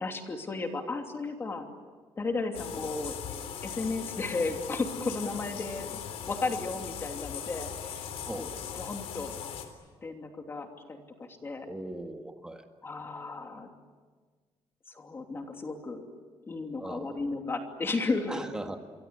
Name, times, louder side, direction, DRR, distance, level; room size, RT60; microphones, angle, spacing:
voice 1, 0.0-1.7 2.2-3.2 3.6-6.0 6.3-8.5 8.8-9.4 10.0-11.7 12.8-13.7 14.9-16.1 16.5-18.4, left 3 dB, 25° left, 4 dB, 2.8 m, -34 dB
sound 1, 2.5-9.7, left 8 dB, 85° left, 3.7 m, -39 dB
voice 2, 8.3-8.6 11.7-12.6 16.8-17.2 18.3-18.8, right 1 dB, 5° right, 5 dB, 1.7 m, -39 dB
28.0 x 24.0 x 8.2 m, 1.5 s
cardioid pair, 170°, 10 cm